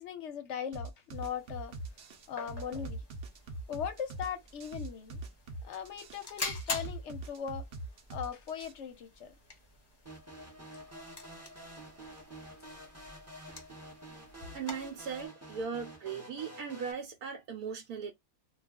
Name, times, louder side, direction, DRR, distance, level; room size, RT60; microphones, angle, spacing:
voice 1, 0.0-1.7 2.3-3.0 3.7-5.2 5.6-7.7 8.1-9.3, left 8 dB, 60° left, 0.8 m, -39 dB
sound 1, 0.7-8.7, right 2 dB, 55° right, 0.8 m, -42 dB
sound 2, 1.1-15.3, left 2 dB, 30° left, 0.5 m, -47 dB
sound 3, 10.0-16.9, right 1 dB, 15° right, 0.6 m, -49 dB
voice 2, 14.5-18.1, right 6 dB, 80° right, 1.1 m, -38 dB
2.4 x 2.3 x 3.4 m
omnidirectional pair, 1.6 m